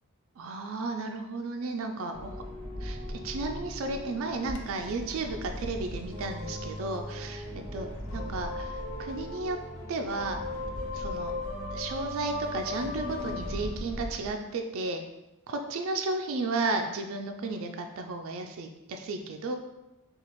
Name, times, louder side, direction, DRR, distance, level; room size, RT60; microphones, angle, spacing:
voice 1, 0.4-2.3 2.8-3.0 3.2-7.5 7.7-9.6 9.9-10.4 10.9-11.3 11.7-15.0 15.5-19.6, right 3 dB, 65° right, 4 dB, 0.4 m, -33 dB
sound 1, 2.1-14.3, left 1 dB, 75° left, 0.8 m, -37 dB
Bird vocalization bird call bird song, 4.4-10.1, left 1 dB, 55° left, 0.5 m, -49 dB
5.7 x 2.4 x 3.0 m, 0.97 s
head